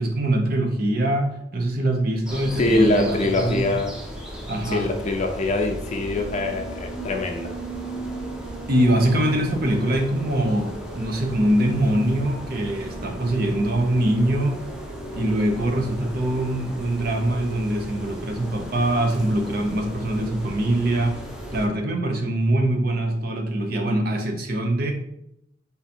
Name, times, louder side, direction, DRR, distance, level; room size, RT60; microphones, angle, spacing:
voice 1, 0.0-3.7 4.5-4.9 8.7-14.6 15.1-21.2 21.5-24.9, right 1 dB, 55° right, 3 dB, 0.8 m, -23 dB
sound 1, 2.3-21.7, right 1 dB, 5° right, 0.6 m, -36 dB
voice 2, 2.6-4.0 4.7-7.6, left 2 dB, 40° left, 4 dB, 0.5 m, -23 dB
3.9 x 2.7 x 4.3 m, 0.76 s
head